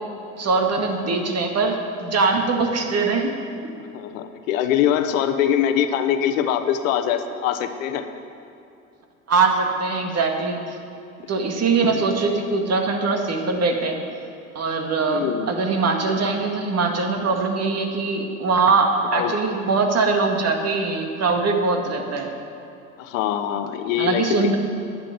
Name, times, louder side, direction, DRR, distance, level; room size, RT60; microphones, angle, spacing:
voice 1, 0.4-3.3 9.3-10.8 11.3-14.0 14.5-22.3 24.0-24.6, right 4 dB, 35° right, 3 dB, 2.1 m, -22 dB
voice 2, 3.9-8.0 15.1-15.5 19.1-19.3 23.0-24.5, left 9 dB, 70° left, 9 dB, 1.0 m, -23 dB
11.0 x 8.6 x 9.1 m, 2.6 s
hypercardioid pair, 70°, 41 cm